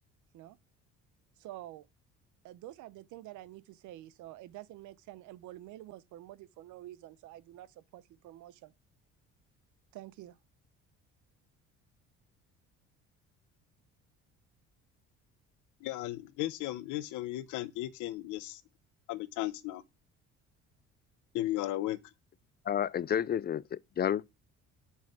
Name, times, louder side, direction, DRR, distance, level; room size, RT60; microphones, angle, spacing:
voice 1, 1.4-1.9 2.4-8.7 9.9-10.4, right 15 dB, 75° right, 0.8 m, -48 dB
voice 2, 15.8-18.6 19.1-19.8 21.3-22.0, left 15 dB, 80° left, 0.9 m, -35 dB
voice 3, 22.7-24.2, left 9 dB, 30° left, 0.4 m, -30 dB
7.4 x 5.7 x 4.5 m
supercardioid pair, 80°, 30 cm